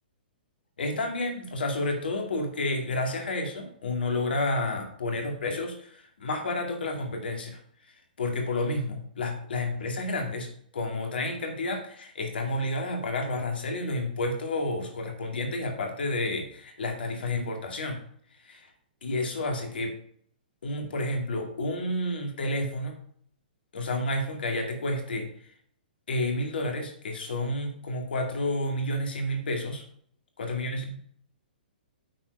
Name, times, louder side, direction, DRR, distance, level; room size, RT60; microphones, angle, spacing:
voice 1, 0.8-7.6 8.2-18.0 18.4-18.7 19.0-19.9 20.6-23.0 23.7-25.3 26.1-29.8 30.4-31.0, left 2 dB, 70° left, 3 dB, 2.3 m, -30 dB
9.0 x 4.6 x 5.4 m, 0.62 s
hypercardioid pair, 125°, 5 cm